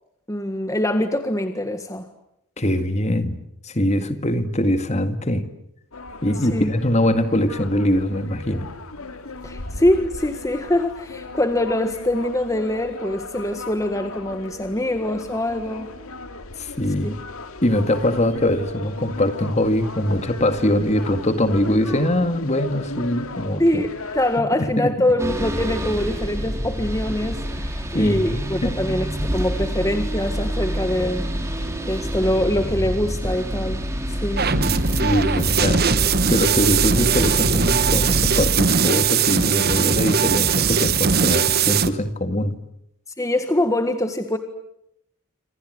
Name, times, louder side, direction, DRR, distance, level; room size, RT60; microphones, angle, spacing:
voice 1, 0.3-2.1 6.5-6.7 9.4-15.9 17.0-17.1 23.6-31.3 31.9-34.4 43.2-44.4, left 1 dB, 15° left, 8 dB, 1.6 m, -23 dB
voice 2, 2.6-3.4 3.6-5.5 6.2-8.7 16.6-17.1 17.6-23.6 24.4-24.9 27.9-28.8 29.2-29.3 34.5-35.9 36.3-42.6, left 1 dB, 30° left, 9 dB, 2.1 m, -22 dB
sound 1, 5.9-24.4, left 3 dB, 75° left, 2.4 m, -36 dB
sound 2, 25.2-38.6, equal, 15° right, 4.6 m, -27 dB
sound 3, 34.4-41.9, right 6 dB, 45° right, 1.2 m, -20 dB
27.5 x 26.5 x 8.0 m, 0.77 s
head